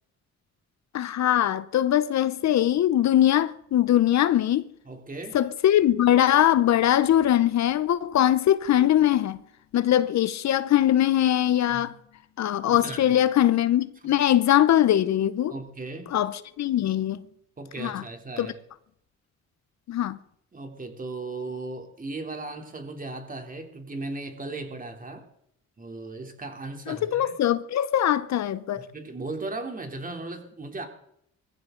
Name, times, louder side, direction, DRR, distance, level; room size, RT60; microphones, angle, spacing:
voice 1, 0.9-4.7 5.3-9.4 9.7-12.0 12.4-15.5 16.1-17.3 17.8-18.0 18.4-18.5 19.9-20.2 26.9-28.9, left 11 dB, 65° left, 0.8 m, -22 dB
voice 2, 4.8-5.4 11.7-11.9 12.7-13.2 14.0-14.1 15.5-16.2 17.6-18.6 20.5-25.3 25.8-27.3 28.8-30.9, right 2 dB, 30° right, 3.4 m, -37 dB
21.5 x 15.5 x 3.9 m
cardioid pair, 90°, 30 cm